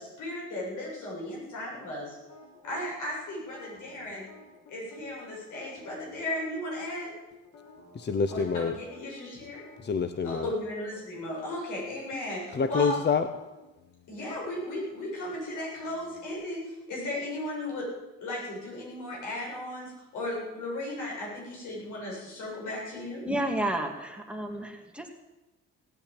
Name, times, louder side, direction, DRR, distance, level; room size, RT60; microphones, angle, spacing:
voice 1, 0.0-2.2 2.6-4.3 4.7-7.1 8.3-9.6 10.2-13.0 14.1-17.9 18.2-23.2, left 1 dB, 85° left, -3 dB, 7.7 m, -36 dB
sound 1, 2.3-2.8 3.4-6.8 7.4-11.0 11.3-11.5 11.8-16.3, left 2 dB, 70° left, 4.0 m, -53 dB
voice 2, 7.9-8.8 9.8-10.5 12.5-13.3, left 5 dB, 35° left, 10 dB, 0.8 m, -27 dB
voice 3, 23.2-25.1, right 1 dB, 5° right, 2 dB, 2.2 m, -31 dB
17.5 x 8.7 x 8.9 m, 1.1 s
cardioid pair, 90°, 30 cm